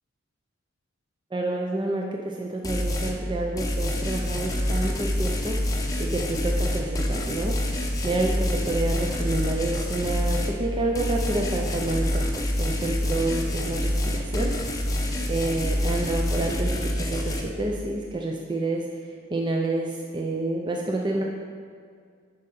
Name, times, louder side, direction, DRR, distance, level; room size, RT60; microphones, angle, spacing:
voice 1, 1.3-12.3 12.6-14.5 14.9-21.2, right 2 dB, 20° right, 0 dB, 0.5 m, -29 dB
sound 1, 2.6-3.2 3.6-10.6 11.0-17.4, left 1 dB, 15° left, 0.7 m, -27 dB
9.9 x 5.1 x 4.2 m, 2.1 s
head